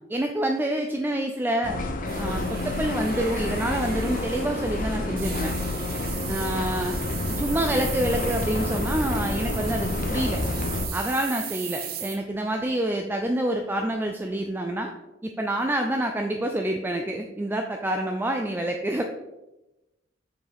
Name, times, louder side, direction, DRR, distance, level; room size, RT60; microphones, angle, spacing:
voice 1, 0.1-1.8 2.2-5.5 6.3-7.0 7.3-10.4 10.9-14.9 15.2-19.0, right 1 dB, 10° right, 3 dB, 0.4 m, -27 dB
sound 1, 1.6-10.9, left 2 dB, 45° left, 0.6 m, -29 dB
sound 2, 2.1-12.2, right 9 dB, 55° right, 0.8 m, -37 dB
6.2 x 5.9 x 3.5 m, 0.99 s
head